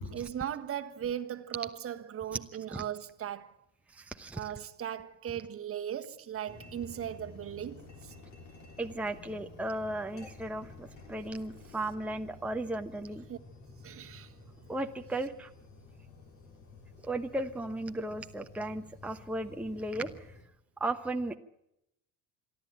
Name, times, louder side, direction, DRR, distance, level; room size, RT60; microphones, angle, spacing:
voice 1, 0.1-3.5 4.4-8.1 13.3-13.4 13.8-14.3, right 10 dB, 40° right, 1.4 m, -38 dB
voice 2, 4.0-4.4 8.8-13.2 14.7-15.5 17.0-20.1 20.8-21.3, right 1 dB, 5° right, 1.0 m, -35 dB
sound 1, 6.5-20.4, left 3 dB, 50° left, 5.5 m, -52 dB
27.0 x 11.0 x 8.9 m
supercardioid pair, 105°, 35 cm